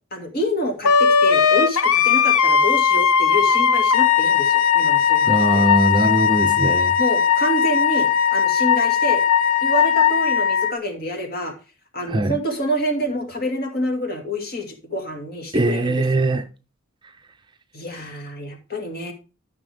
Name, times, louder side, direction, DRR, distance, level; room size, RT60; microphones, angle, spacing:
voice 1, 0.1-5.6 7.0-9.2 9.6-11.5 11.9-16.0 17.7-19.1, equal, 45° left, 2.3 m, -27 dB
Wind instrument woodwind instrument, 0.8-10.7, left 7 dB, 80° left, 0.7 m, -18 dB
voice 2, 5.3-6.9 12.1-12.4 15.5-16.4, right 1 dB, 20° right, 0.6 m, -21 dB
13.0 x 6.2 x 3.4 m
head